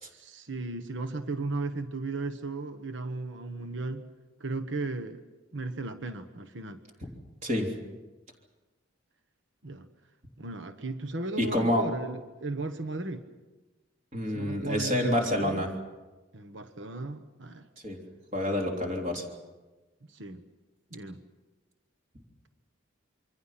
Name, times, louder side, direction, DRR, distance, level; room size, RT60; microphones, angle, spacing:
voice 1, 0.1-4.0 4.4-5.2 5.5-6.8 9.6-9.9 10.4-13.2 14.3-15.6 16.3-17.7 20.1-20.4 20.9-21.2, right 3 dB, 65° right, 9 dB, 1.3 m, -36 dB
voice 2, 11.4-11.9 14.1-15.7 17.8-18.0 18.3-19.2, left 1 dB, 35° right, 1 dB, 3.4 m, -28 dB
27.5 x 24.0 x 5.8 m, 1.2 s
head